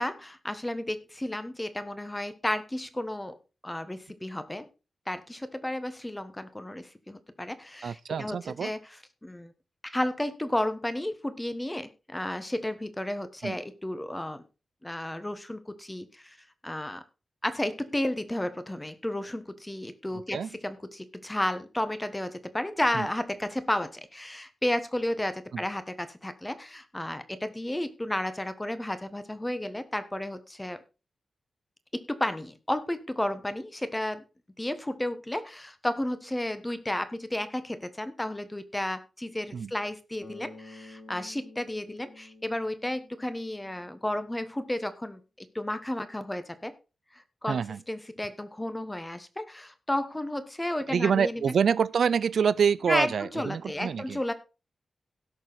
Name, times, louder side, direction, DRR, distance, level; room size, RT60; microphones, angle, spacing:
voice 1, 0.0-3.3 3.6-4.7 5.1-9.5 9.8-14.4 14.8-16.4 16.6-17.0 17.4-30.8 31.9-34.2 34.6-46.7 47.1-47.6 47.9-51.5 52.9-54.3, left 1 dB, 10° left, 1.2 m, -32 dB
voice 2, 7.8-8.7 13.4-13.6 20.3-20.5 22.9-23.1 25.5-25.6 39.5-39.7 47.5-47.8 50.9-54.2, right 7 dB, 75° right, 0.5 m, -26 dB
Bass guitar, 40.2-44.2, left 2 dB, 40° left, 3.1 m, -50 dB
17.0 x 6.5 x 4.0 m
wide cardioid pair, 145°, 0 cm